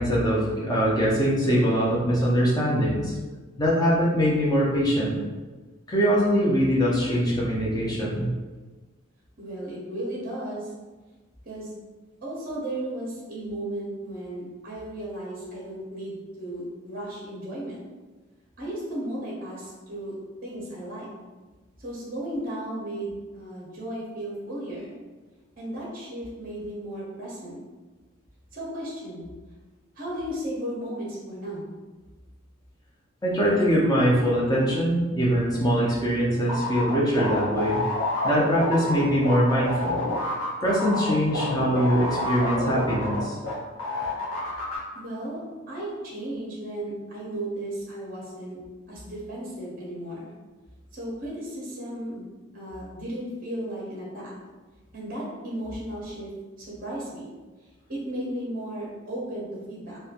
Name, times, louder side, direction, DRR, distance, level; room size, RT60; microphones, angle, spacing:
voice 1, 0.0-3.1 3.6-5.2 5.9-8.3 33.2-37.8 38.2-40.0 40.6-43.4, equal, 20° left, -6 dB, 0.5 m, -22 dB
voice 2, 9.4-10.7 11.5-11.7 12.2-17.8 18.6-20.2 20.4-21.1 21.8-24.9 25.6-27.6 28.5-29.3 30.0-31.7 44.9-48.6 48.9-50.3 50.9-54.3 54.9-56.3 56.6-57.3 57.9-60.0, right 1 dB, 45° right, -5 dB, 0.7 m, -35 dB
sound 1, 36.5-43.5 43.8-44.8, left 2 dB, 85° left, 0.8 m, -28 dB
2.9 x 2.2 x 2.4 m, 1.3 s
head